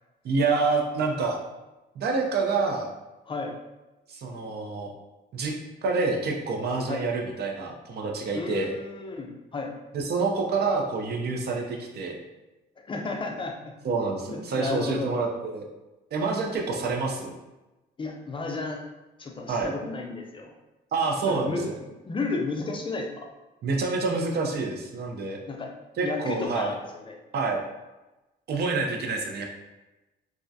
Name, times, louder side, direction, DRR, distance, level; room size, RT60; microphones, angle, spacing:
voice 1, 0.2-1.4 2.0-2.9 4.1-4.9 5.3-5.6 5.8-8.7 9.9-12.2 13.8-15.7 16.1-17.3 19.5-19.7 20.9-21.8 23.6-25.4 26.0-26.7 27.3-27.6 28.5-29.4, right 4 dB, 55° right, 1 dB, 0.5 m, -27 dB
voice 2, 8.3-9.7 12.9-13.5 14.3-15.1 18.0-18.8 19.2-20.5 21.2-21.6 22.0-23.3 25.5-25.7 26.0-26.8 27.0-27.1, left 3 dB, 25° left, 2 dB, 0.4 m, -32 dB
2.4 x 2.1 x 2.6 m, 1.1 s
cardioid pair, 90°, 20 cm